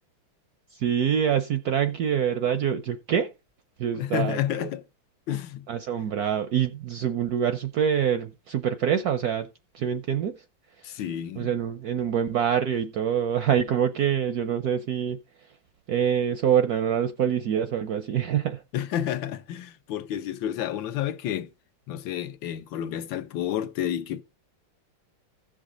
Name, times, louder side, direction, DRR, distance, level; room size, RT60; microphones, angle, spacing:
voice 1, 0.7-3.3 3.8-4.7 5.7-9.5 9.7-10.4 11.4-15.2 15.9-18.6, right 9 dB, 70° right, 0.9 m, -25 dB
voice 2, 3.9-4.8 5.3-5.7 10.8-11.5 18.7-21.5 21.9-24.2, left 11 dB, 75° left, 1.4 m, -30 dB
15.5 x 5.2 x 3.7 m
omnidirectional pair, 2.2 m